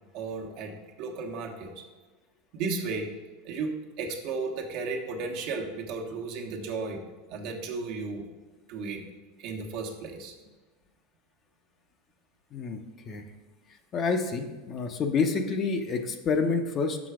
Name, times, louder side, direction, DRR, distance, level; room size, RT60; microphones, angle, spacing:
voice 1, 0.1-0.7 1.0-1.8 2.5-3.1 3.4-7.0 7.3-8.3 8.7-9.0 9.4-10.3, right 4 dB, 55° right, 1 dB, 1.3 m, -34 dB
voice 2, 12.5-13.2 13.9-17.0, left 4 dB, 35° left, 5 dB, 0.8 m, -28 dB
6.1 x 5.7 x 4.8 m, 1.3 s
supercardioid pair, 130°, 0 cm